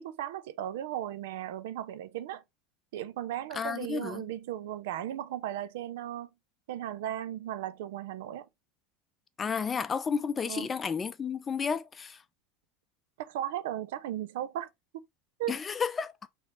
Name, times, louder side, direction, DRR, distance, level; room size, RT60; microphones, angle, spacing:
voice 1, 0.0-2.4 2.9-6.3 6.7-8.5 10.5-10.7 13.2-14.7 14.9-15.1 15.4-15.6, right 12 dB, 75° right, 0.4 m, -36 dB
voice 2, 3.5-4.2 9.4-12.2 15.5-16.1, left 6 dB, 25° left, 0.5 m, -32 dB
4.0 x 3.2 x 3.0 m
hypercardioid pair, 85°, 0 cm